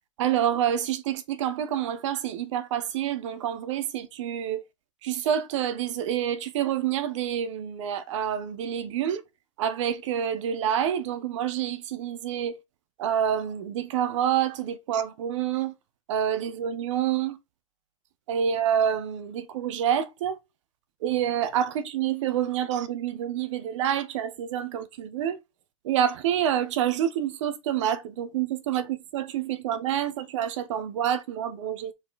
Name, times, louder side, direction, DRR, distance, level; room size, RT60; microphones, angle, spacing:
voice 1, 0.2-4.6 5.0-9.2 9.6-12.6 13.0-15.7 16.1-17.4 18.3-20.4 21.0-25.4 25.8-31.9, right 9 dB, 60° right, 1.3 m, -27 dB
5.5 x 4.6 x 4.2 m
supercardioid pair, 145°, 17 cm